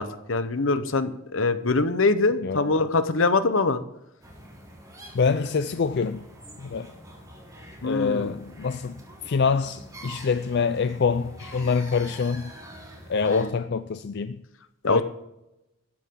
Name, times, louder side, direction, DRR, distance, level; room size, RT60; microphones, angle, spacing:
voice 1, 0.0-3.8 7.8-8.3 13.2-13.5 14.8-15.0, left 3 dB, 75° left, 1.0 m, -23 dB
voice 2, 2.4-2.7 5.1-6.3 6.6-6.9 7.8-12.5 13.1-14.4 14.8-15.0, left 5 dB, 55° left, 0.5 m, -25 dB
sound 1, 4.2-13.4, right 1 dB, 20° right, 4.0 m, -45 dB
14.5 x 13.5 x 3.8 m
head